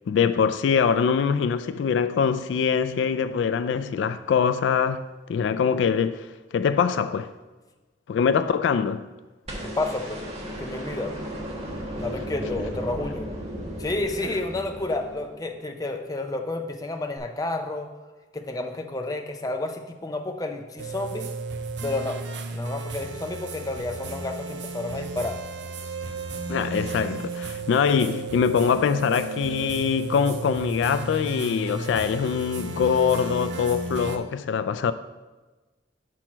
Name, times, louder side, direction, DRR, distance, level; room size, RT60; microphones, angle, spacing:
voice 1, 0.1-5.0 5.3-6.3 6.5-7.3 8.1-9.0 26.5-34.9, left 6 dB, 85° left, 0.3 m, -23 dB
sound 1, 9.5-15.6 17.2-17.3, equal, 35° right, 1.3 m, -35 dB
voice 2, 9.6-10.2 10.6-11.1 12.0-13.3 13.8-17.9 18.3-21.3 21.8-22.2 22.5-25.4, left 2 dB, 20° left, 0.5 m, -30 dB
sound 2, 20.8-34.2, right 3 dB, 65° right, 0.6 m, -34 dB
6.2 x 4.4 x 5.9 m
head